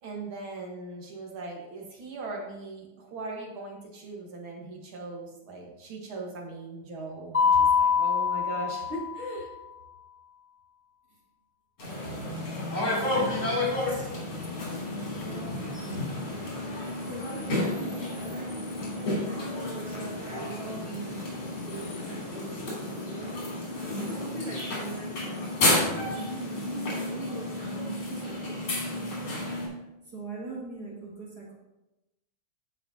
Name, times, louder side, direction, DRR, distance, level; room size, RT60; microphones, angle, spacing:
voice 1, 0.0-9.5, right 2 dB, 75° right, -1 dB, 2.3 m, -39 dB
Mallet percussion, 7.3-9.4, left 6 dB, 25° left, 0.8 m, -24 dB
sound 1, 11.8-29.7, left 1 dB, 75° left, 3.8 m, -31 dB
voice 2, 15.1-16.5 17.1-18.6 19.2-21.1 21.4-23.4 24.0-29.4 30.1-31.5, right 2 dB, 55° right, -3 dB, 1.7 m, -42 dB
13.5 x 5.0 x 2.8 m, 0.95 s
omnidirectional pair, 2.3 m